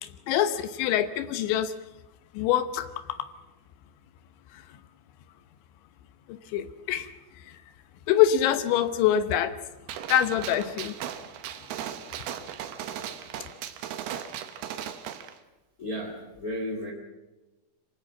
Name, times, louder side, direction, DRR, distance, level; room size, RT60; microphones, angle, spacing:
voice 1, 0.0-1.7 2.4-2.9 6.3-7.1 8.1-9.5 10.1-10.9, left 10 dB, 75° left, 12 dB, 3.0 m, -24 dB
Gunshot gunfire, 9.9-15.3, right 10 dB, 75° right, 2.4 m, -37 dB
voice 2, 15.8-16.9, equal, 50° left, 1 dB, 1.0 m, -33 dB
25.5 x 17.0 x 7.3 m, 1.1 s
omnidirectional pair, 6.0 m